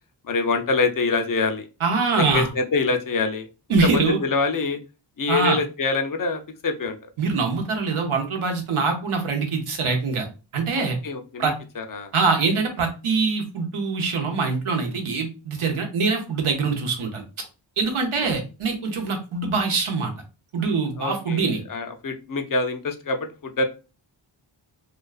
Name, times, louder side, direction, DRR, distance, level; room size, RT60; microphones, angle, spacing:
voice 1, 0.2-1.7 2.2-3.5 3.8-4.8 5.2-7.1 10.8-12.1 21.0-23.7, left 3 dB, 45° left, 6 dB, 0.5 m, -25 dB
voice 2, 1.8-2.5 3.7-4.2 5.3-5.6 7.2-10.3 10.5-11.0 11.4-11.5 12.1-17.2 17.8-20.1 20.5-21.6, right 4 dB, 80° right, 3 dB, 0.8 m, -23 dB
2.4 x 2.3 x 2.3 m, 0.32 s
cardioid pair, 40°, 49 cm